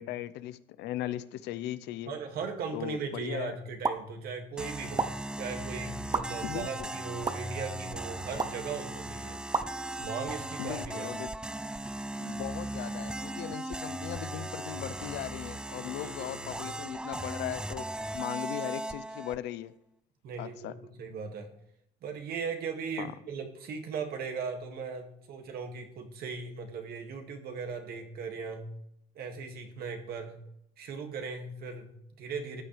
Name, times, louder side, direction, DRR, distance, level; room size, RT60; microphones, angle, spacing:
voice 1, 0.0-2.1 2.7-3.6 6.4-6.9 10.6-11.3 12.2-19.7 20.4-20.7 23.0-23.1, left 13 dB, 85° left, 15 dB, 0.7 m, -38 dB
voice 2, 2.1-9.4 10.0-11.1 16.0-16.6 20.2-21.5 22.0-28.7 29.2-30.4 30.8-32.6, right 5 dB, 65° right, 4 dB, 2.1 m, -38 dB
sound 1, 3.8-4.0 5.0-5.1 6.1-6.2 7.2-7.3 8.4-8.6 9.5-9.7, right 4 dB, 20° right, 0.8 m, -28 dB
sound 2, 4.6-19.4, right 1 dB, 5° right, 0.3 m, -38 dB
14.0 x 9.2 x 3.3 m, 0.76 s
cardioid pair, 110°, 17 cm